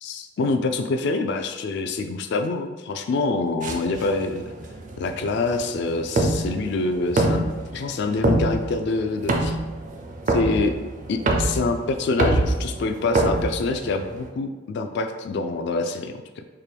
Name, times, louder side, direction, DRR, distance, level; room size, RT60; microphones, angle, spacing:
voice 1, 0.0-4.4 5.0-7.5 7.7-9.6 10.3-10.7 11.1-16.4, left 3 dB, 60° left, 7 dB, 0.3 m, -26 dB
sound 1, 3.6-14.3, right 2 dB, 40° right, 0.4 m, -26 dB
4.4 x 2.2 x 3.4 m, 1.2 s
head